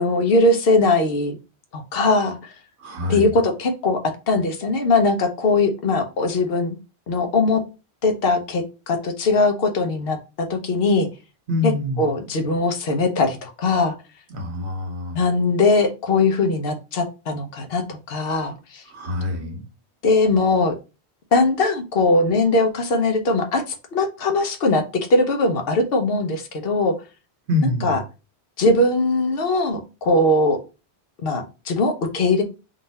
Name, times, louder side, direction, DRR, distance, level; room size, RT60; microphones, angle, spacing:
voice 1, 0.0-1.4 1.7-2.5 3.1-4.0 4.3-6.8 7.1-7.6 8.0-11.1 11.6-11.7 12.0-13.9 15.1-18.8 20.0-20.7 21.3-23.6 23.9-24.8 25.1-26.9 27.8-28.0 28.6-30.6 31.2-32.4, left 2 dB, 65° left, 5 dB, 1.0 m, -20 dB
voice 2, 2.8-3.4 11.5-12.0 14.3-15.2 18.9-19.6 27.5-28.0, left 2 dB, 90° right, 3 dB, 1.3 m, -25 dB
3.9 x 2.6 x 4.1 m, 0.30 s
omnidirectional pair, 1.1 m